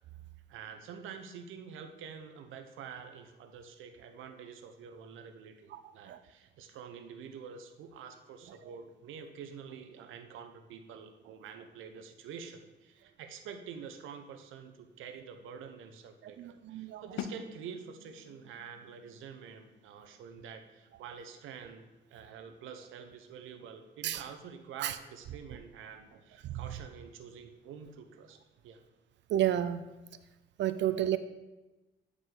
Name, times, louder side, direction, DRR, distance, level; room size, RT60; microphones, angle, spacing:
voice 1, 0.5-21.8 22.1-28.4 28.6-28.8, right 7 dB, 85° right, 6 dB, 0.8 m, -47 dB
voice 2, 16.4-17.0 24.0-24.2 24.8-24.9 29.3-29.8 30.6-31.2, right 11 dB, 65° right, 12 dB, 0.4 m, -30 dB
sound 1, 17.2-22.9, left 8 dB, 80° left, 0.6 m, -48 dB
9.4 x 4.9 x 3.8 m, 1.1 s
cardioid pair, 90°, 20 cm